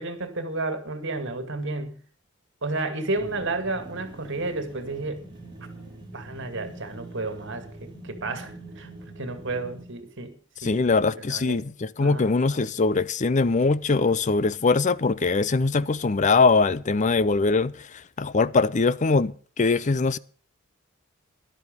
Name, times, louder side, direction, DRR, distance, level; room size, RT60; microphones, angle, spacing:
voice 1, 0.0-2.0 2.6-5.3 6.1-8.9 9.2-10.3 10.6-10.8 11.2-11.6 12.0-12.3, right 2 dB, 60° right, 2.2 m, -31 dB
sound 1, 3.2-9.9, right 2 dB, 25° right, 5.4 m, -44 dB
voice 2, 10.6-20.2, left 4 dB, 35° left, 0.5 m, -22 dB
13.0 x 11.5 x 5.3 m
head